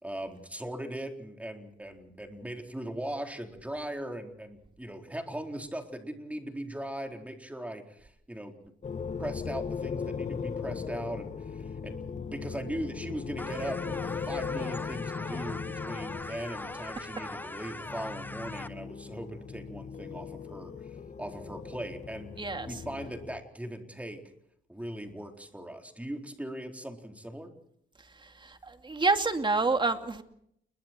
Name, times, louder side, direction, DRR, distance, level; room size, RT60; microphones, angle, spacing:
voice 1, 0.0-8.7 9.2-20.7 21.2-22.3 22.7-24.2 24.7-27.5, right 1 dB, 5° right, 4 dB, 4.1 m, -39 dB
sound 1, 8.8-23.4, left 6 dB, 40° left, 1.6 m, -38 dB
sound 2, 13.4-18.7, left 1 dB, 10° left, 1.3 m, -41 dB
voice 2, 22.4-22.8 28.4-30.2, right 3 dB, 25° right, 7 dB, 2.5 m, -28 dB
28.5 x 22.5 x 4.5 m, 0.71 s
cardioid pair, 90°, 20 cm